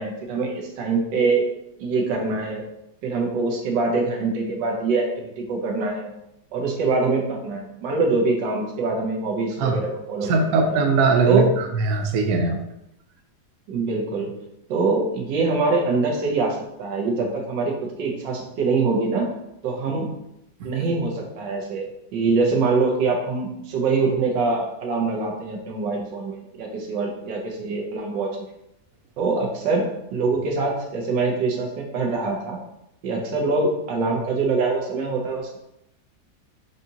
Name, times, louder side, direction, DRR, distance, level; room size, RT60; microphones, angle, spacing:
voice 1, 0.0-1.5 1.8-2.6 3.0-6.1 6.5-10.6 11.2-11.5 13.7-14.3 14.7-17.7 18.0-19.3 19.6-20.1 20.6-21.8 22.1-28.5 29.2-32.6 33.0-35.6, right 3 dB, 85° right, 0 dB, 1.5 m, -24 dB
voice 2, 10.2-12.6 20.6-20.7, right 4 dB, 70° right, 3 dB, 1.0 m, -20 dB
4.9 x 2.7 x 2.7 m, 0.83 s
omnidirectional pair, 1.9 m